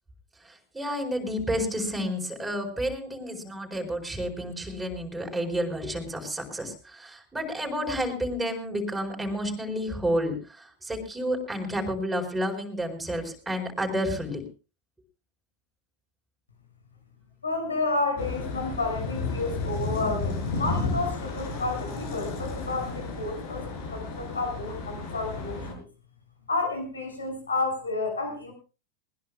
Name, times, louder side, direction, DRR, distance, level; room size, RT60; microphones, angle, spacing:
voice 1, 0.4-14.4, equal, 5° right, 2 dB, 4.8 m, -30 dB
voice 2, 17.4-25.8 26.5-28.5, left 3 dB, 75° left, 5 dB, 6.3 m, -31 dB
sound 1, 18.2-25.7, left 3 dB, 55° left, 5.7 m, -33 dB
20.5 x 20.5 x 2.3 m, 0.33 s
figure-of-eight pair, 90°, 0 cm